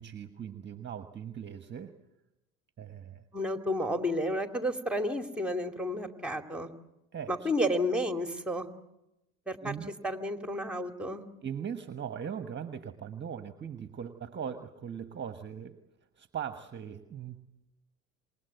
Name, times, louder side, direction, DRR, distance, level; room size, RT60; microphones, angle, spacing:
voice 1, 0.0-1.9 2.8-3.2 7.1-7.5 9.6-9.9 11.4-15.8 16.2-17.5, right 8 dB, 25° right, 9 dB, 1.4 m, -40 dB
voice 2, 3.3-6.7 7.3-8.7 9.5-9.7 10.0-11.2, equal, 5° right, 5 dB, 2.5 m, -31 dB
27.5 x 21.0 x 8.1 m, 0.93 s
hypercardioid pair, 80°, 40 cm